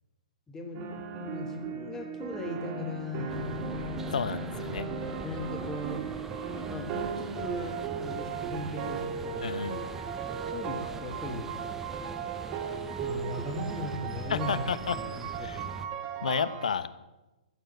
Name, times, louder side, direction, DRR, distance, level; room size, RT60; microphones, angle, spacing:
voice 1, 0.5-0.8 1.2-3.6 5.2-6.0 6.7-9.7 10.5-11.5 13.0-15.6, left 2 dB, 10° left, 2 dB, 1.5 m, -38 dB
sound 1, 0.7-16.8, right 6 dB, 30° right, 1.9 m, -37 dB
sound 2, 3.3-15.9, right 4 dB, 10° right, 0.6 m, -42 dB
voice 2, 4.1-4.9 9.4-9.8 14.3-15.0 15.4-15.6 16.2-16.9, left 6 dB, 75° left, 14 dB, 1.0 m, -31 dB
15.0 x 6.9 x 8.0 m, 1.1 s
hypercardioid pair, 155°, 4 cm